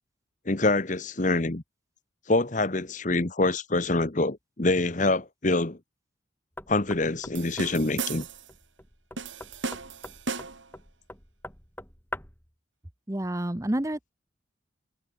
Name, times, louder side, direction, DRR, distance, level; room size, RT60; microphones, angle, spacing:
voice 1, 0.5-1.6 2.3-5.8 6.7-8.3, left 2 dB, 40° left, 1.2 m, -25 dB
Knock, 6.6-12.5, left 1 dB, 10° left, 5.1 m, -44 dB
sound 1, 7.3-8.5 9.2-10.7, right 4 dB, 75° right, 2.7 m, -35 dB
voice 2, 13.1-14.1, right 1 dB, 15° right, 0.8 m, -29 dB
head